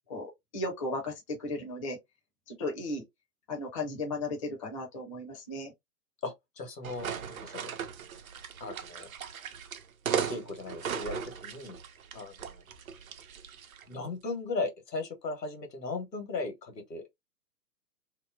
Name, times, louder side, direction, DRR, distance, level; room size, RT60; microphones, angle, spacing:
voice 1, 0.1-2.0 2.5-3.0 3.5-5.7, left 2 dB, 20° left, 0.5 m, -35 dB
voice 2, 6.2-7.7 8.6-9.1 10.3-11.8 12.1-12.6 13.9-17.0, left 3 dB, 80° left, 1.2 m, -37 dB
sound 1, 6.8-13.9, right 7 dB, 60° right, 0.6 m, -37 dB
2.8 x 2.0 x 2.3 m
figure-of-eight pair, 120°, 49 cm